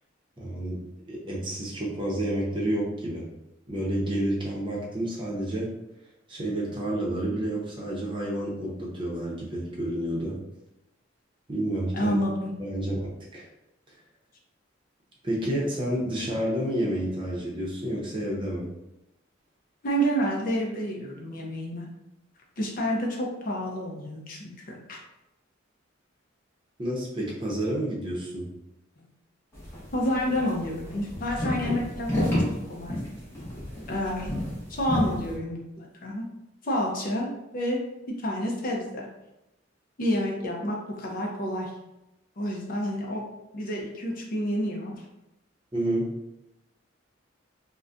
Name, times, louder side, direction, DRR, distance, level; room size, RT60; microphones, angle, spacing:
voice 1, 0.4-0.8 1.1-3.3 3.7-5.7 6.3-10.3 11.5-12.2 12.6-12.9 13.3-13.5 15.2-18.6 26.8-28.4 45.7-46.1, right 1 dB, 25° right, -4 dB, 0.7 m, -29 dB
voice 2, 11.9-12.5 19.8-21.9 22.6-25.0 29.9-32.3 32.7-33.0 33.9-34.3 34.7-36.2 36.6-37.8 38.2-39.1 40.0-41.7 42.4-43.2 43.5-45.0, equal, 45° left, -1 dB, 0.5 m, -29 dB
sound 1, 29.5-35.4, equal, 15° left, 0.9 m, -31 dB
3.9 x 2.1 x 2.4 m, 0.92 s
head